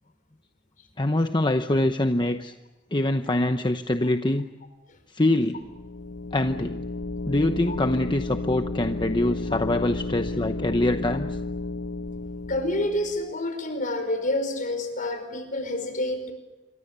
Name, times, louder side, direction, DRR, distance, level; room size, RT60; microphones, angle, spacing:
voice 1, 1.0-2.5 2.9-4.5 5.1-5.6 6.3-6.8 7.3-11.4, left 1 dB, 25° left, 7 dB, 0.9 m, -24 dB
sound 1, 5.5-13.3, left 3 dB, 90° left, 1.3 m, -33 dB
voice 2, 12.5-16.3, left 1 dB, 45° left, 7 dB, 5.3 m, -28 dB
28.0 x 23.5 x 6.9 m, 1.1 s
head